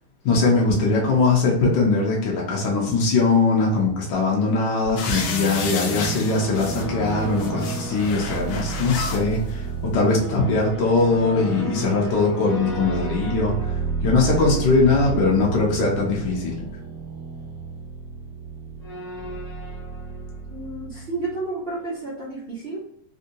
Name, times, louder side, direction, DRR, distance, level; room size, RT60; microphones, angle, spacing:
voice 1, 0.2-16.5, left 3 dB, 65° left, -2 dB, 1.3 m, -21 dB
sound 1, 5.0-6.9 7.2-9.2 10.1-10.2, left 5 dB, 90° left, 1.6 m, -32 dB
sound 2, 5.0-21.5, right 4 dB, 30° left, 1.5 m, -31 dB
voice 2, 20.5-23.0, right 2 dB, 80° right, -6 dB, 0.5 m, -31 dB
3.6 x 2.6 x 2.6 m, 0.67 s
omnidirectional pair, 2.4 m